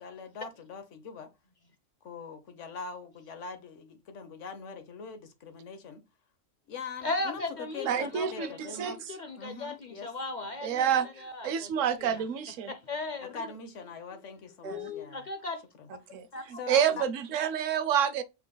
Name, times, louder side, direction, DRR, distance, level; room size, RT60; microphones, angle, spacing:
voice 1, 0.0-1.3 2.0-6.0 6.7-9.0 9.4-10.1 13.2-15.3 15.8-15.9 16.5-17.1, left 5 dB, 75° left, 1.3 m, -42 dB
voice 2, 7.0-12.2 12.7-13.4 14.6-15.6 16.3-16.8, left 2 dB, 50° left, 0.6 m, -37 dB
voice 3, 7.8-8.9 10.6-11.1 11.4-12.7 14.6-14.9 16.1-18.2, right 8 dB, 85° right, 1.0 m, -28 dB
5.6 x 3.9 x 2.2 m
omnidirectional pair, 1.3 m